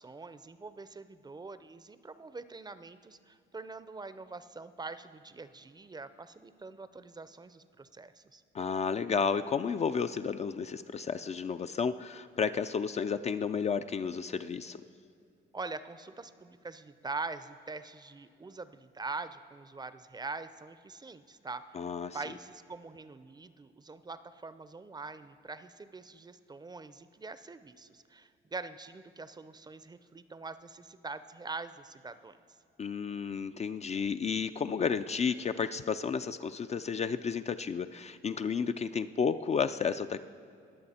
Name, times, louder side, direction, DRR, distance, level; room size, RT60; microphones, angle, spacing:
voice 1, 0.0-8.4 15.5-21.8 22.1-32.4, right 3 dB, 20° right, 13 dB, 0.5 m, -43 dB
voice 2, 8.5-14.8 21.7-22.2 32.8-40.2, left 6 dB, 35° left, 10 dB, 0.3 m, -32 dB
21.0 x 7.7 x 4.3 m, 2.6 s
cardioid pair, 90°, 20 cm